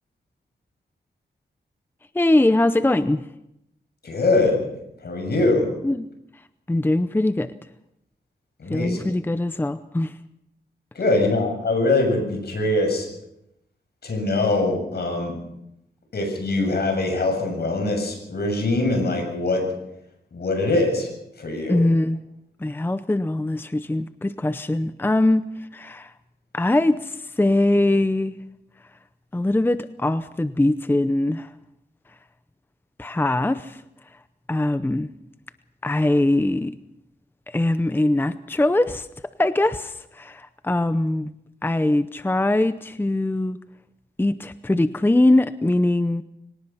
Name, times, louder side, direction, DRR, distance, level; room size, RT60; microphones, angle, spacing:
voice 1, 2.1-3.3 5.8-6.1 6.7-7.5 8.7-10.2 21.7-22.2 22.6-26.1 26.5-28.4 29.3-31.5 33.0-33.8 34.5-35.1 35.8-36.8 37.5-39.1 39.4-41.3 41.6-43.6 44.2-46.2, left 1 dB, 10° left, 12 dB, 0.6 m, -22 dB
voice 2, 4.0-4.7 5.0-5.7 8.6-9.0 10.9-13.1 14.0-15.3 16.1-19.6 20.3-21.1 21.4-21.8, left 2 dB, 65° left, 4 dB, 7.4 m, -22 dB
24.5 x 18.5 x 5.8 m, 0.83 s
wide cardioid pair, 100°, 18 cm